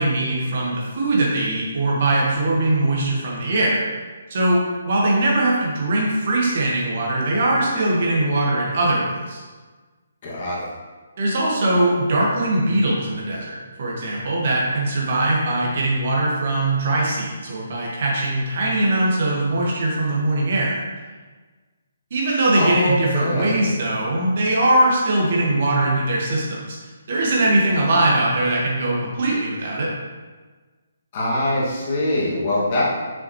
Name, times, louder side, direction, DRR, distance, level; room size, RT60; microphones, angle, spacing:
voice 1, 0.0-3.8 4.3-4.6 4.8-9.4 11.2-20.8 22.1-26.8 27.1-29.9, right 2 dB, 45° right, -4 dB, 1.9 m, -21 dB
voice 2, 10.2-10.6 22.5-23.6 31.1-32.9, left 1 dB, 35° left, -7 dB, 2.3 m, -23 dB
7.9 x 6.4 x 3.3 m, 1.4 s
figure-of-eight pair, 135°, 0 cm